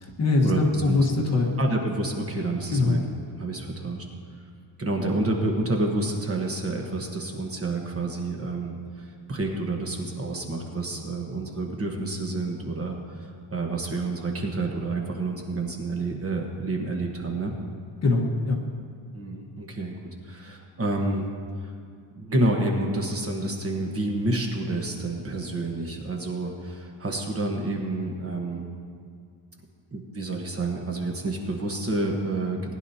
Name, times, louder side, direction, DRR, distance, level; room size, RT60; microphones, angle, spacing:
voice 1, 0.0-1.6 2.7-3.0 18.0-18.6, left 3 dB, 35° left, 0 dB, 1.3 m, -22 dB
voice 2, 1.6-3.0 3.3-4.0 4.8-17.5 19.1-19.9 20.2-21.3 21.6-21.7 22.1-28.6 29.9-32.7, right 2 dB, 30° right, 1 dB, 1.2 m, -29 dB
19.5 x 10.5 x 2.8 m, 2.2 s
wide cardioid pair, 165°, 46 cm